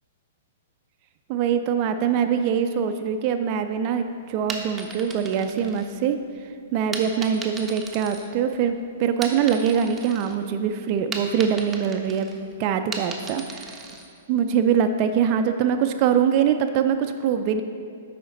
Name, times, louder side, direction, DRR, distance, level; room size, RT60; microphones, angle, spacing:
voice 1, 1.3-6.2 6.7-12.3 12.6-13.8 14.3-17.6, right 8 dB, 35° right, 7 dB, 0.3 m, -23 dB
sound 1, 4.3-6.3 6.9-8.7 9.1-10.4 10.7-14.1, right 3 dB, 10° right, 0.7 m, -37 dB
8.7 x 5.0 x 3.8 m, 2.3 s
figure-of-eight pair, 110°, 0 cm